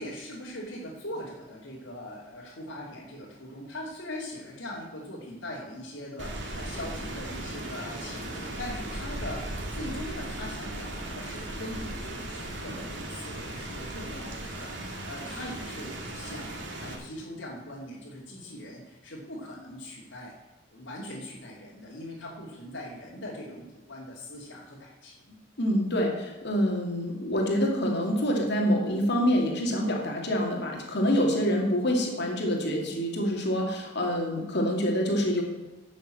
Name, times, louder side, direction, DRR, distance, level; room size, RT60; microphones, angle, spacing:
voice 1, 0.0-20.3 20.7-25.4, left 1 dB, 85° left, -8 dB, 2.9 m, -41 dB
Rain, 6.2-16.9, right 1 dB, 70° right, 2.6 m, -37 dB
voice 2, 25.6-35.4, equal, 65° left, 0 dB, 2.5 m, -26 dB
11.0 x 7.2 x 7.6 m, 1.1 s
head